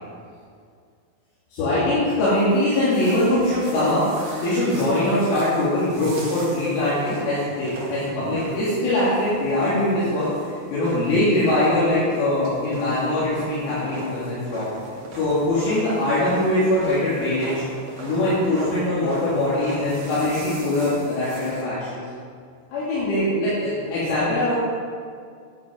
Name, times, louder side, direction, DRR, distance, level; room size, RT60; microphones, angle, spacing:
voice 1, 1.5-4.1 4.4-14.7 15.2-17.6 18.0-22.0 22.7-24.5, left 1 dB, 70° left, -11 dB, 5.0 m, -22 dB
sound 1, 2.3-21.6, right 2 dB, 85° right, 1.1 m, -39 dB
12.0 x 9.1 x 5.1 m, 2.2 s
omnidirectional pair, 5.9 m